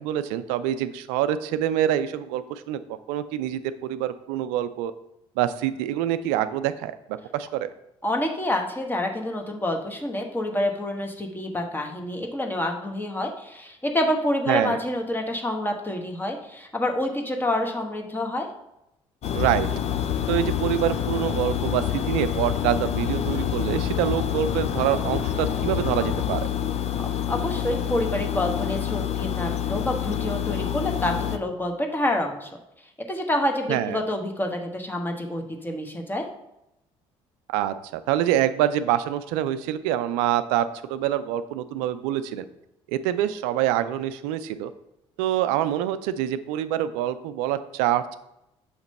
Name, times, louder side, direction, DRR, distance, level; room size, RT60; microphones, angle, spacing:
voice 1, 0.0-4.9 5.4-7.7 14.5-14.8 19.3-19.7 20.3-26.5 33.7-34.0 37.5-42.5 42.9-44.7 45.2-48.2, right 11 dB, 85° right, 12 dB, 0.4 m, -26 dB
voice 2, 8.0-18.5 27.3-32.5 33.1-36.3, left 1 dB, 15° left, 3 dB, 1.1 m, -27 dB
sound 1, 19.2-31.4, left 9 dB, 55° left, 0.5 m, -27 dB
6.5 x 3.0 x 5.2 m, 0.86 s
supercardioid pair, 70°, 13 cm